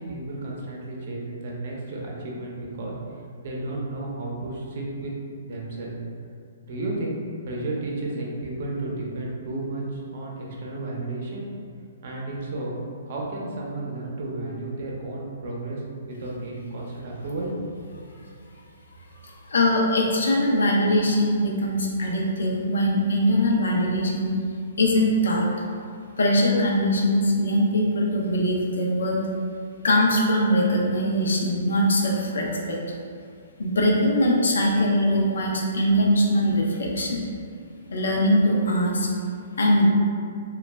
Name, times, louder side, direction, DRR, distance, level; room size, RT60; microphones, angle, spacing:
voice 1, 0.0-3.0 3.4-5.1 5.5-5.9 6.6-7.2 7.4-11.5 12.0-12.8 13.1-17.6, right 2 dB, 55° right, -3 dB, 0.6 m, -32 dB
voice 2, 19.2-24.3 24.8-25.5 26.2-29.2 29.8-32.8 33.6-37.2 37.9-39.1 39.6-39.9, equal, 90° left, -2 dB, 0.5 m, -22 dB
2.2 x 2.1 x 3.2 m, 2.3 s
hypercardioid pair, 155°, 0 cm